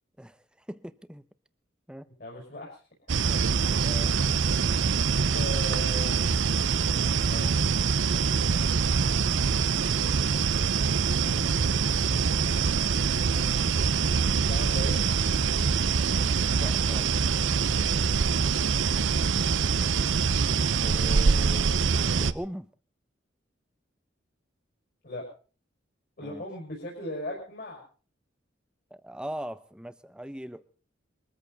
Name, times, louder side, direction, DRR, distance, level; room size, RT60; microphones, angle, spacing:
voice 1, 0.2-1.3 1.9-2.1 3.8-4.4 13.3-13.5 16.6-17.1 20.8-22.7 26.2-26.4 28.9-30.6, equal, 5° right, 13 dB, 0.8 m, -41 dB
voice 2, 2.2-3.4 5.3-6.2 7.3-7.5 8.1-8.2 10.0-12.6 14.5-15.1 18.4-18.6 20.6-20.7 25.0-25.3 26.2-27.8, left 1 dB, 55° left, -3 dB, 5.7 m, -39 dB
sound 1, 3.1-22.3, right 5 dB, 80° right, 0.7 m, -24 dB
23.0 x 14.0 x 4.1 m, 0.38 s
head